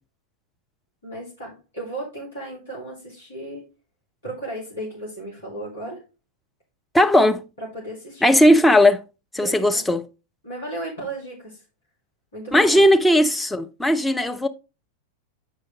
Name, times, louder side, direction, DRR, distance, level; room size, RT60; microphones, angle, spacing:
voice 1, 1.0-3.7 4.2-6.0 7.6-8.3 9.4-9.8 10.4-11.6 12.3-12.9, right 1 dB, 70° left, 4.6 m, -35 dB
voice 2, 6.9-7.5 8.2-9.0 9.3-10.0 12.5-14.5, left 1 dB, 5° left, 0.7 m, -17 dB
8.2 x 5.1 x 3.9 m
figure-of-eight pair, 90°, 0 cm